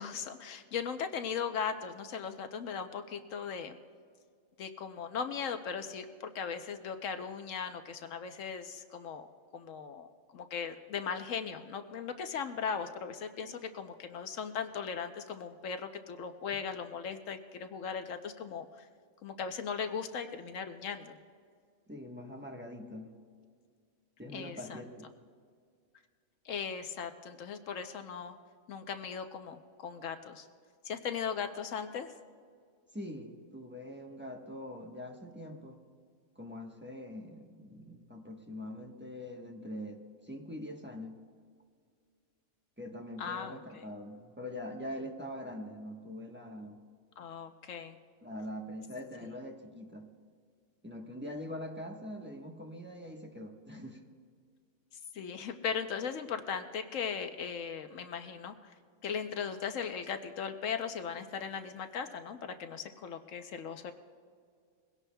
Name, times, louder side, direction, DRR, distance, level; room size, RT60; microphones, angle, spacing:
voice 1, 0.0-3.8 4.6-9.3 9.5-18.9 19.2-21.2 24.3-24.8 26.4-28.3 28.7-30.5 30.8-32.1 43.2-43.6 47.2-48.0 55.1-58.7 59.0-63.9, left 6 dB, 75° left, 7 dB, 1.1 m, -38 dB
voice 2, 21.9-23.2 24.2-25.1 32.9-35.8 36.3-41.2 42.8-46.8 48.2-50.1 50.8-54.0, left 1 dB, 10° right, 1 dB, 1.0 m, -43 dB
22.0 x 17.0 x 2.3 m, 2.1 s
omnidirectional pair, 1.3 m